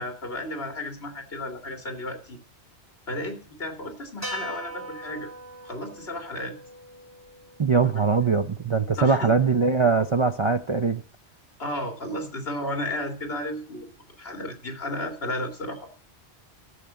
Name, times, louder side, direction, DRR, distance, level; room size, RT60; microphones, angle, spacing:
voice 1, 0.0-2.4 3.1-5.3 5.6-6.6 7.9-8.0 9.0-9.3 11.6-13.9 14.2-15.9, left 1 dB, 60° left, 2.7 m, -33 dB
sound 1, 4.2-8.6, right 1 dB, 15° right, 4.6 m, -41 dB
voice 2, 7.6-11.0, right 4 dB, 35° right, 0.5 m, -22 dB
12.5 x 7.3 x 6.7 m
omnidirectional pair, 1.2 m